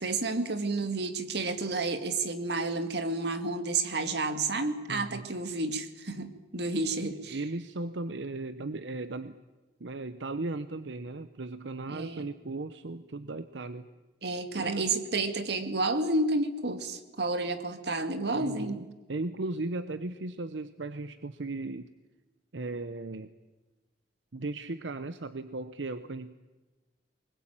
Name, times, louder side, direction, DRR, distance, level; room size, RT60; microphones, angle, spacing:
voice 1, 0.0-7.4 11.9-12.2 14.2-18.8, right 3 dB, 65° right, 8 dB, 2.1 m, -30 dB
voice 2, 4.9-5.3 6.8-9.4 9.8-13.9 14.5-15.0 18.3-21.9 22.5-23.3 24.3-26.3, right 2 dB, 85° right, 12 dB, 0.9 m, -37 dB
23.5 x 21.0 x 8.9 m, 1.2 s
head